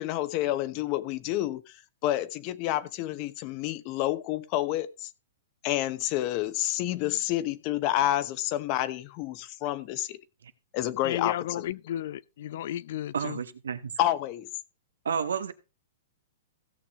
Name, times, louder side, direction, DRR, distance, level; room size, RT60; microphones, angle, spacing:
voice 1, 0.0-5.1 5.6-10.2 10.7-11.3 14.0-14.5, left 14 dB, 40° left, 0.9 m, -29 dB
voice 2, 11.0-13.4, left 11 dB, 60° left, 0.5 m, -33 dB
voice 3, 13.1-13.9 15.0-15.5, right 7 dB, 90° right, 1.4 m, -30 dB
16.5 x 6.7 x 3.7 m
hypercardioid pair, 140°, 0 cm